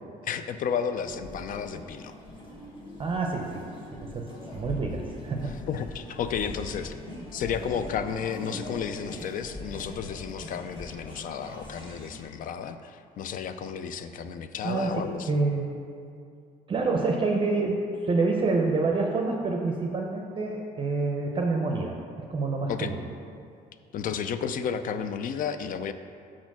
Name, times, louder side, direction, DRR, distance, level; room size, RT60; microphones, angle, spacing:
voice 1, 0.2-2.1 5.4-7.0 7.3-15.3 22.7-22.9 23.9-25.9, left 7 dB, 55° left, 10 dB, 0.4 m, -32 dB
sound 1, 0.9-12.2, left 1 dB, 30° left, 1.6 m, -42 dB
voice 2, 3.0-5.6 14.6-15.7 16.7-22.0 22.3-23.0, right 3 dB, 30° right, 1 dB, 0.6 m, -27 dB
6.0 x 4.3 x 5.9 m, 2.4 s
cardioid pair, 110°, 17 cm